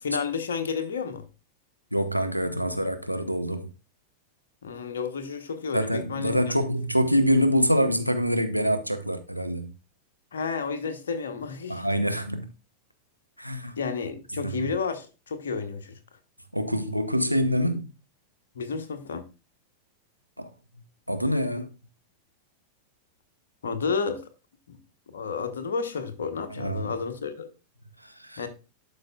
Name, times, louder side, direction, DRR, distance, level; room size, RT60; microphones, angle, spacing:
voice 1, 0.0-1.2 4.6-6.5 10.3-11.9 13.8-16.0 18.5-19.2 23.6-24.2 24.7-24.8 25.1-27.5 28.4-28.5, left 5 dB, 65° left, 1.0 m, -31 dB
voice 2, 1.9-3.7 5.7-9.7 11.7-12.5 13.4-13.8 14.4-14.7 16.5-17.9 20.4-20.5 21.1-21.7 26.6-26.9 28.0-28.5, equal, 90° right, 0.6 m, -25 dB
11.5 x 5.0 x 2.3 m
figure-of-eight pair, 90°, 0 cm